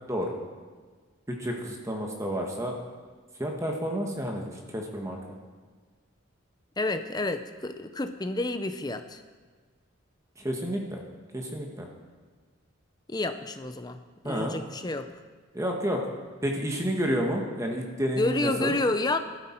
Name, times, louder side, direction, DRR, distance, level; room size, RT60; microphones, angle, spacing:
voice 1, 1.3-2.7 3.4-5.2 10.4-11.0 11.3-11.9 14.2-14.6 15.5-16.0 16.4-18.8, equal, 15° right, 1 dB, 1.4 m, -30 dB
voice 2, 6.8-9.2 13.1-14.0 14.2-15.1 18.2-19.2, left 2 dB, 20° left, 9 dB, 0.6 m, -29 dB
14.0 x 12.5 x 4.4 m, 1.5 s
head